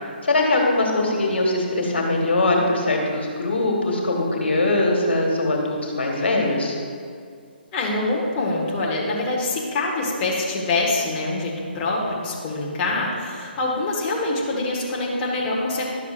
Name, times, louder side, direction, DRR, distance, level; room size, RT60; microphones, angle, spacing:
voice 1, 0.2-6.7, left 2 dB, 85° left, 0 dB, 1.5 m, -21 dB
voice 2, 7.7-15.9, left 2 dB, 25° left, -4 dB, 1.4 m, -25 dB
11.5 x 7.0 x 2.5 m, 2.2 s
hypercardioid pair, 150°, 6 cm